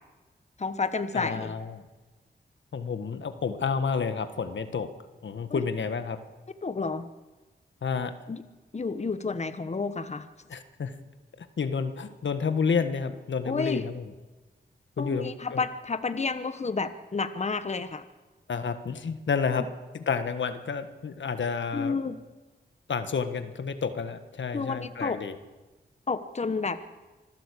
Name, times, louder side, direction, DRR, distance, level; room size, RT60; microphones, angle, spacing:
voice 1, 0.6-1.5 5.5-5.6 6.6-7.1 8.3-8.4 8.7-10.3 13.4-13.8 15.0-18.1 21.7-22.2 24.5-25.2 26.1-26.8, left 4 dB, 35° left, 11 dB, 1.2 m, -30 dB
voice 2, 1.1-1.8 2.7-4.9 5.2-6.2 7.8-8.1 10.5-10.9 11.4-14.0 15.0-15.6 18.5-19.6 19.9-22.0 22.9-25.3, left 5 dB, 80° left, 9 dB, 1.5 m, -30 dB
25.5 x 15.5 x 8.5 m, 1.2 s
wide cardioid pair, 95°, 19 cm